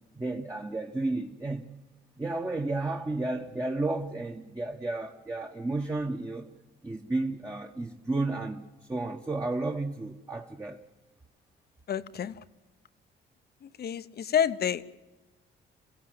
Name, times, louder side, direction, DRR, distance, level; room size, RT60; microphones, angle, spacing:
voice 1, 0.1-1.7 2.2-6.5 6.8-8.6 8.9-10.8, right 2 dB, 15° right, 1.3 m, -32 dB
voice 2, 11.9-12.3 13.8-14.9, left 9 dB, 55° left, 0.9 m, -28 dB
27.5 x 16.0 x 7.8 m
cardioid pair, 90°, 20 cm